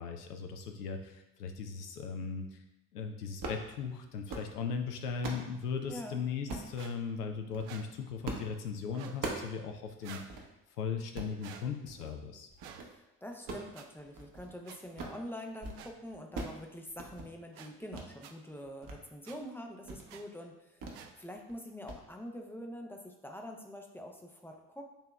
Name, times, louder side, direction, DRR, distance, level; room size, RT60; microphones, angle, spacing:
voice 1, 0.0-2.6 2.9-10.4 10.8-12.5, left 5 dB, 85° left, 5 dB, 0.6 m, -38 dB
sound 1, 3.3-3.7 4.1-4.5 4.9-5.5 6.5-6.7 7.4-7.7 8.2-8.5 8.8-9.6 9.9-10.0 10.3-10.5 11.0-11.3 11.9-12.2 12.5-12.9 13.3-14.5 14.8-15.2 15.5-16.6 16.9-17.3 17.9-18.1 18.5-19.0 19.3-19.4 19.8-20.1 20.8-21.0 21.3-21.5 21.9-22.0, right 3 dB, 45° right, 0.9 m, -41 dB
voice 2, 5.9-6.2 12.8-24.9, equal, 5° left, 2 dB, 0.4 m, -45 dB
sound 2, 6.7-6.9 7.6-7.8 8.9-9.2 10.0-10.3 11.4-11.6 12.6-12.8 13.7-13.8 14.6-14.8 15.7-15.9 16.3-16.5 17.5-17.7 18.2-18.3 19.2-19.4 20.1-20.2 20.9-21.1, right 8 dB, 70° right, 0.5 m, -49 dB
6.8 x 2.8 x 2.3 m, 0.93 s
figure-of-eight pair, 50°, 46 cm